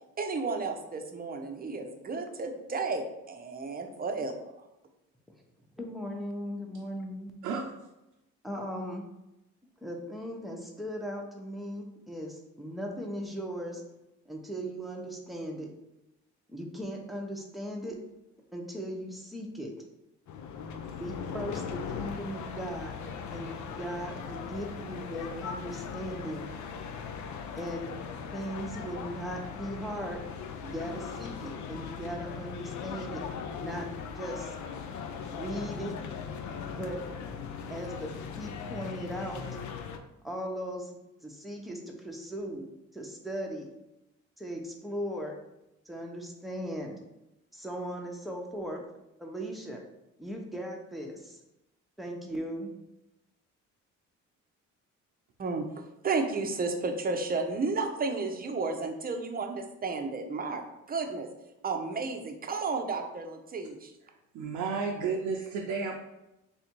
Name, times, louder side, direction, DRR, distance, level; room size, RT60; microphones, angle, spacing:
voice 1, 0.2-4.4 55.4-61.3 61.6-63.9, right 3 dB, 30° right, 4 dB, 0.6 m, -32 dB
voice 2, 5.8-7.3 8.4-9.0 9.8-13.8 14.3-15.7 16.5-18.0 18.5-19.7 21.0-22.9 23.3-23.5 23.8-26.5 27.5-27.9 28.3-30.2 30.6-33.2 33.6-33.9 34.1-34.6 35.2-35.9 36.7-37.0 37.7-38.1 38.3-39.4 40.2-41.0 41.2-42.7 42.9-43.7 44.4-45.3 45.9-46.9 47.5-48.8 49.2-49.8 50.2-51.4 52.0-52.7, equal, ahead, 0 dB, 0.8 m, -38 dB
voice 3, 7.4-7.9 64.3-66.0, right 5 dB, 85° right, 0 dB, 0.6 m, -32 dB
sound 1, 20.3-40.0, left 6 dB, 70° left, 0.5 m, -39 dB
3.5 x 2.6 x 4.4 m, 0.92 s
cardioid pair, 90°, 30 cm